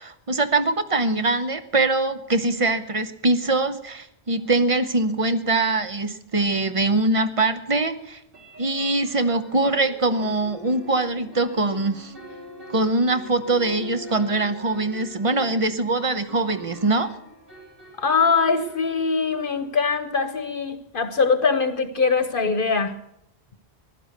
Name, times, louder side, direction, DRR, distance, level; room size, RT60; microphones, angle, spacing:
voice 1, 0.0-8.2 8.6-12.1 12.7-17.1, right 2 dB, 35° right, 10 dB, 0.9 m, -23 dB
sound 1, 4.4-4.5 4.9-5.0 5.3-5.4 8.3-19.8, equal, 60° right, 2.9 m, -44 dB
voice 2, 18.0-22.9, left 5 dB, 55° left, 10 dB, 1.1 m, -22 dB
15.5 x 11.5 x 6.6 m, 0.76 s
omnidirectional pair, 1.1 m